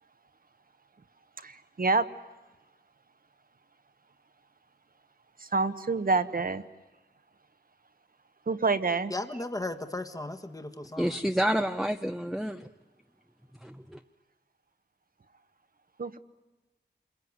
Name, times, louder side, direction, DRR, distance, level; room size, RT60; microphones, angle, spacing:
voice 1, 1.4-2.1 5.4-6.6 8.5-9.1 16.0-16.2, right 3 dB, 50° right, 11 dB, 1.2 m, -27 dB
voice 2, 9.1-11.2, left 2 dB, 20° left, 7 dB, 1.5 m, -36 dB
voice 3, 11.0-12.7 13.6-14.0, equal, ahead, 5 dB, 0.8 m, -29 dB
28.0 x 22.0 x 9.6 m, 1.1 s
wide cardioid pair, 95°, 18 cm